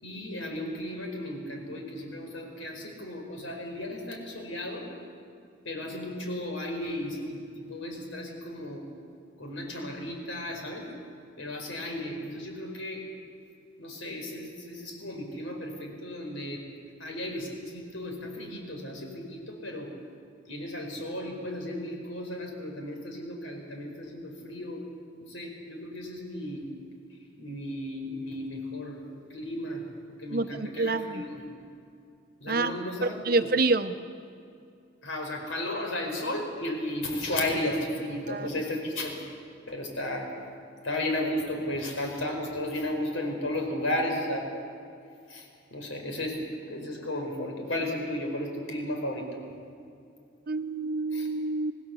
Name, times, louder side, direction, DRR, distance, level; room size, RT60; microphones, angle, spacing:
voice 1, 0.0-4.9 5.6-8.8 9.4-10.9 11.4-13.0 13.8-16.6 17.0-19.9 20.5-24.8 25.2-26.7 27.4-29.8 30.2-31.4 32.4-33.4 35.0-39.3 39.7-40.3 40.8-44.4 45.3-49.4 51.1-51.3, left 1 dB, 85° left, 2 dB, 4.9 m, -34 dB
voice 2, 30.3-31.2 32.5-34.0 38.3-38.5 50.5-51.7, right 3 dB, 50° right, 9 dB, 0.9 m, -28 dB
26.5 x 18.0 x 7.1 m, 2.5 s
head